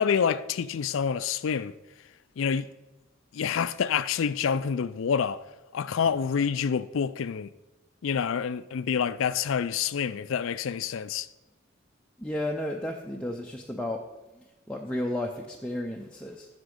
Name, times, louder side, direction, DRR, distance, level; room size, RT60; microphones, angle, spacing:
voice 1, 0.0-1.7 2.4-2.7 3.3-5.4 5.7-7.5 8.0-11.3, left 7 dB, 70° left, 0.4 m, -27 dB
voice 2, 12.2-14.0 14.7-16.5, left 1 dB, 5° left, 0.5 m, -32 dB
14.5 x 5.1 x 5.1 m
head